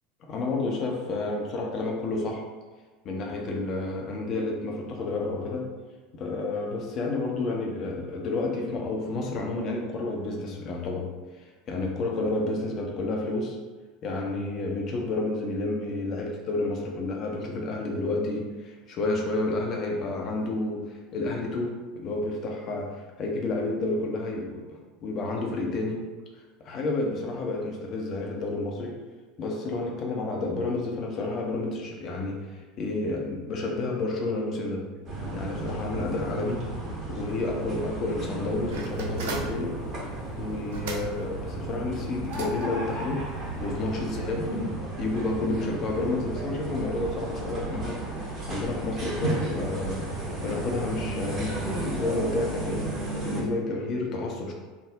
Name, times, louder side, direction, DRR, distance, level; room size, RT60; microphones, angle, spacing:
voice 1, 0.2-2.4 3.0-5.7 6.1-11.1 11.4-13.6 14.0-26.1 26.6-29.0 29.4-34.9 35.3-36.6 37.1-39.8 40.4-43.3 43.6-44.6 45.0-48.0 48.5-50.0 50.4-52.9 53.3-54.5, left 2 dB, 40° left, 0 dB, 0.5 m, -30 dB
sound 1, 35.1-53.4, right 2 dB, 35° right, 1.1 m, -33 dB
sound 2, 38.7-44.6, right 3 dB, 65° right, 0.4 m, -42 dB
3.5 x 2.0 x 3.5 m, 1.3 s
figure-of-eight pair, 75°, 0 cm